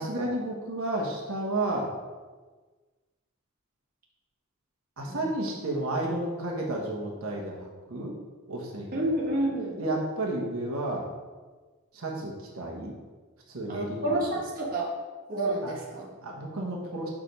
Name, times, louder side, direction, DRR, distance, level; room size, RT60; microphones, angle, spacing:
voice 1, 0.0-1.9 5.0-8.2 8.5-8.9 9.8-11.1 11.9-12.9 13.5-14.2 15.6-15.7 16.2-17.1, right 1 dB, 80° right, -2 dB, 1.2 m, -32 dB
voice 2, 8.9-9.8 13.7-14.9 15.3-16.1, right 1 dB, 40° right, -3 dB, 1.4 m, -29 dB
5.8 x 5.0 x 5.2 m, 1.3 s
head